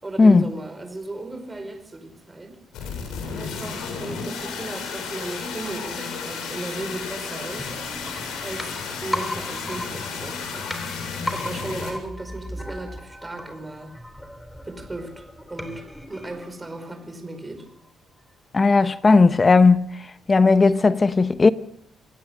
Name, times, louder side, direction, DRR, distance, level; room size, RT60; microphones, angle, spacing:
voice 1, 0.0-2.6 3.4-7.7 8.4-10.7 11.3-14.0 14.6-17.7, right 2 dB, 20° right, 5.1 m, -36 dB
sound 1, 2.7-11.9, left 5 dB, 85° left, 7.4 m, -33 dB
sound 2, 7.6-17.3 17.6-17.7, left 1 dB, 5° left, 3.5 m, -37 dB
voice 2, 18.5-19.9 20.3-21.5, left 4 dB, 30° left, 1.0 m, -15 dB
27.5 x 17.0 x 6.5 m
cardioid pair, 90°, 0 cm